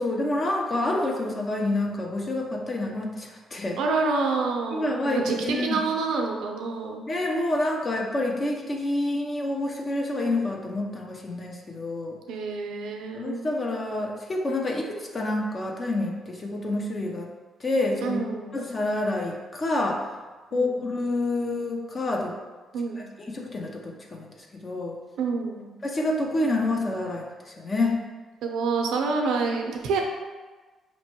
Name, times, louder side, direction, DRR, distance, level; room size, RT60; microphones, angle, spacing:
voice 1, 0.0-3.8 4.7-5.8 7.1-12.2 13.1-17.3 17.6-18.3 18.5-20.0 20.5-22.4 23.0-25.0 25.8-28.0, left 2 dB, 35° left, 0 dB, 0.6 m, -28 dB
voice 2, 3.8-7.1 12.3-13.4 18.0-18.6 20.5-20.9 22.7-23.0 25.2-25.7 28.4-30.0, right 4 dB, 85° right, 2 dB, 0.6 m, -27 dB
5.3 x 3.0 x 2.9 m, 1.3 s
cardioid pair, 90°, 0 cm